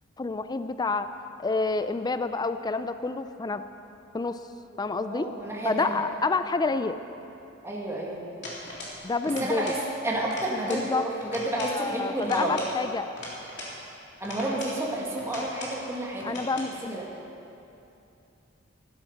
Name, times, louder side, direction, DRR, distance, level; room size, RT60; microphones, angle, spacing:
voice 1, 0.2-1.1 1.4-3.6 4.1-4.4 4.8-5.3 5.6-7.0 9.0-9.7 10.6-11.1 11.6-13.1 16.2-17.0, left 3 dB, 20° left, 11 dB, 0.4 m, -28 dB
voice 2, 5.0-6.0 7.6-8.3 9.4-9.8 10.0-12.6 14.2-16.6 16.9-17.1, right 1 dB, 15° right, -3 dB, 1.8 m, -31 dB
sound 1, 8.4-9.0 9.2-9.8 10.1-10.9 11.2-11.8 12.2-13.8 14.2-14.8 15.2-15.8 16.2-16.7, left 1 dB, 55° left, 3.4 m, -40 dB
15.0 x 12.5 x 5.9 m, 2.8 s
head